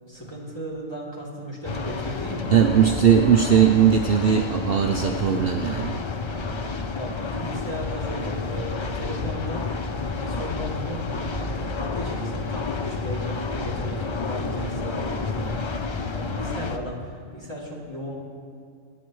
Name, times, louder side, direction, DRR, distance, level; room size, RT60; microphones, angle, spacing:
voice 1, 0.0-2.8 6.3-9.7 10.0-18.2, equal, 20° left, -6 dB, 2.8 m, -35 dB
sound 1, 1.6-16.8, left 4 dB, 45° left, 0.3 m, -30 dB
voice 2, 2.5-6.0, right 8 dB, 55° right, 3 dB, 0.8 m, -19 dB
25.0 x 9.9 x 3.1 m, 2.2 s
omnidirectional pair, 1.3 m